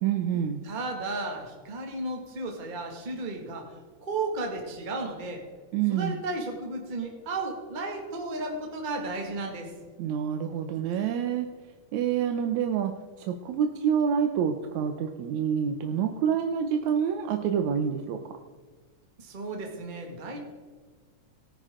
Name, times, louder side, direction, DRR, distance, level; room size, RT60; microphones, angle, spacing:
voice 1, 0.0-0.6 5.7-6.2 10.0-11.5 11.9-12.9 13.2-18.2, right 8 dB, 75° right, 6 dB, 2.0 m, -27 dB
voice 2, 0.6-3.7 4.0-5.4 5.9-9.7 19.2-20.4, right 2 dB, 20° right, 1 dB, 1.6 m, -34 dB
18.5 x 10.0 x 3.7 m, 1.4 s
omnidirectional pair, 3.6 m